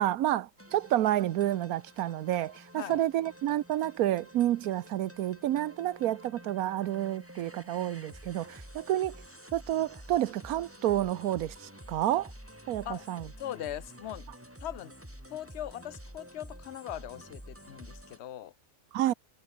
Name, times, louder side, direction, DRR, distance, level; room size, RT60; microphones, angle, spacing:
voice 1, 0.0-9.1 9.5-12.3 12.7-13.3 18.9-19.1, right 13 dB, 75° right, 1.2 m, -29 dB
sound 1, 0.6-18.2, equal, 10° right, 5.3 m, -50 dB
voice 2, 13.4-14.3 14.6-14.9 15.3-18.5, left 11 dB, 55° left, 0.9 m, -40 dB
omnidirectional pair, 1.5 m